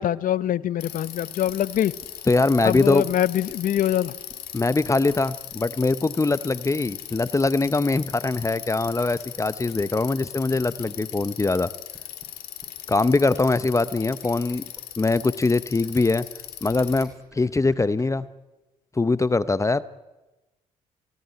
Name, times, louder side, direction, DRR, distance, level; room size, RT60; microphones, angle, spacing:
voice 1, 0.0-1.9 2.6-4.1, left 11 dB, 60° left, 18 dB, 0.8 m, -24 dB
Bicycle, 0.8-17.0, left 13 dB, 85° left, 2.7 m, -39 dB
sound 1, 1.5-18.0, right 1 dB, 5° right, 6.3 m, -52 dB
voice 2, 2.3-3.0 4.5-11.7 12.9-14.6 15.0-16.3 16.6-18.3 18.9-19.8, left 3 dB, 20° left, 15 dB, 0.8 m, -22 dB
23.0 x 17.5 x 9.2 m, 1.1 s
supercardioid pair, 60°, 16 cm